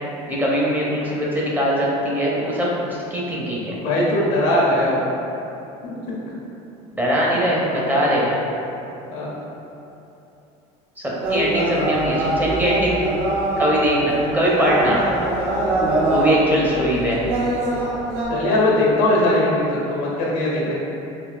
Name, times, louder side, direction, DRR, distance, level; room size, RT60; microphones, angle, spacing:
voice 1, 0.3-3.8 6.9-8.4 11.0-13.0 13.6-15.0 16.1-17.2, equal, 10° right, -6 dB, 0.6 m, -21 dB
voice 2, 3.8-5.0 5.8-6.2 9.1-9.3 18.3-20.7, left 1 dB, 85° left, -5 dB, 0.8 m, -20 dB
sound 1, 11.2-18.2, right 2 dB, 60° right, 0.8 m, -23 dB
3.5 x 2.7 x 2.4 m, 2.9 s
supercardioid pair, 105°, 16 cm